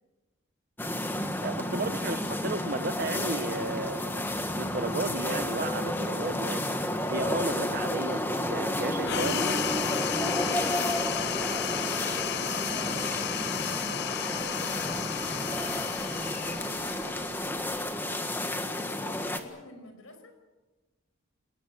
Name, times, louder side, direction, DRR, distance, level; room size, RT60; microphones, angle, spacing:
sound 1, 0.8-19.4, left 1 dB, 10° left, 1.6 m, -31 dB
voice 1, 1.4-6.7 7.1-9.7, right 2 dB, 45° right, 12 dB, 1.1 m, -34 dB
sound 2, 9.0-17.9, left 9 dB, 50° left, 0.7 m, -34 dB
voice 2, 10.7-20.4, left 1 dB, 80° left, 7 dB, 5.4 m, -50 dB
28.0 x 19.5 x 7.6 m, 1.2 s
head